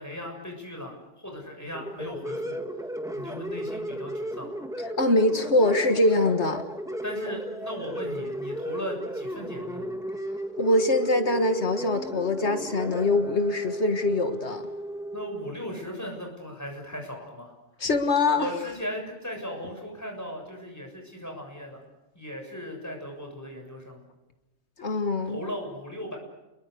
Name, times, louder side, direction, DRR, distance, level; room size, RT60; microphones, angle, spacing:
voice 1, 0.0-2.6 3.1-4.5 7.0-10.0 15.1-17.5 18.3-21.8 22.1-24.0 25.3-26.2, left 1 dB, 15° left, 2 dB, 7.2 m, -37 dB
sound 1, 1.7-15.5, right 1 dB, 5° right, 1.7 m, -34 dB
voice 2, 5.0-6.6 10.6-14.6 17.8-18.5 24.8-25.4, left 2 dB, 65° left, 7 dB, 2.0 m, -23 dB
29.5 x 22.5 x 6.8 m, 1.0 s
omnidirectional pair, 1.2 m